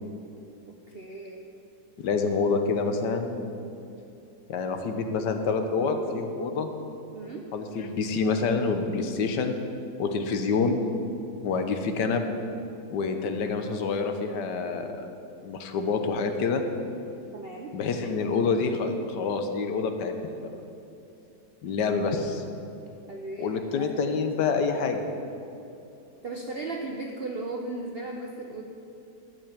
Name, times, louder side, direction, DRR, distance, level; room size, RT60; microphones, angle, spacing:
voice 1, 0.7-1.5 7.1-7.5 10.1-10.2 17.3-17.7 23.1-24.5 26.2-28.6, right 2 dB, 50° right, 1 dB, 0.8 m, -37 dB
voice 2, 2.0-3.4 4.5-6.7 7.5-9.6 10.0-10.8 11.4-12.3 12.9-15.1 15.4-16.6 17.7-20.5 21.6-22.4 23.4-25.0, left 4 dB, 80° left, 6 dB, 1.6 m, -27 dB
12.0 x 5.6 x 8.7 m, 2.8 s
omnidirectional pair, 1.8 m